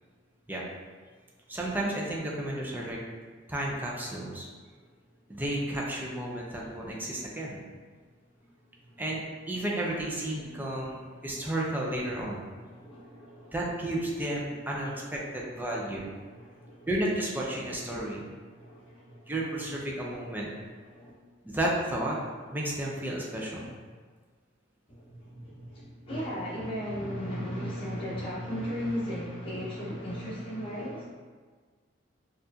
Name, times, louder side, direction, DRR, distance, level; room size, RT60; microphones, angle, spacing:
voice 1, 1.5-3.0 3.5-4.5 5.3-7.6 9.0-12.4 13.5-16.1 16.9-18.2 19.3-20.5 21.4-22.2 22.5-23.7, right 1 dB, 10° right, -3 dB, 0.5 m, -32 dB
voice 2, 4.7-5.4 7.9-9.0 11.2-11.5 12.5-14.0 14.5-16.9 17.5-17.6 17.9-19.6 19.9-21.1 24.9-31.0, equal, 30° left, -8 dB, 1.1 m, -39 dB
4.6 x 2.5 x 2.7 m, 1.5 s
head